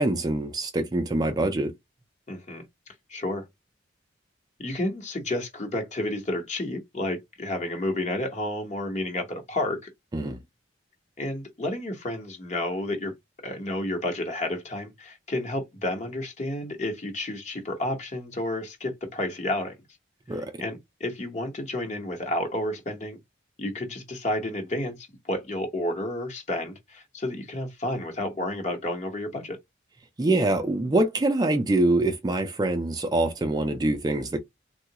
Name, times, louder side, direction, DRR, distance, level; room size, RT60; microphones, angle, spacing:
voice 1, 0.0-1.7 10.1-10.4 20.3-20.6 30.2-34.4, right 2 dB, 20° right, 0.4 m, -24 dB
voice 2, 2.3-2.6 3.1-3.5 4.6-9.8 11.2-13.1 13.4-19.7 20.6-23.2 23.6-29.6, left 1 dB, 40° left, 1.0 m, -31 dB
3.6 x 2.3 x 2.9 m
head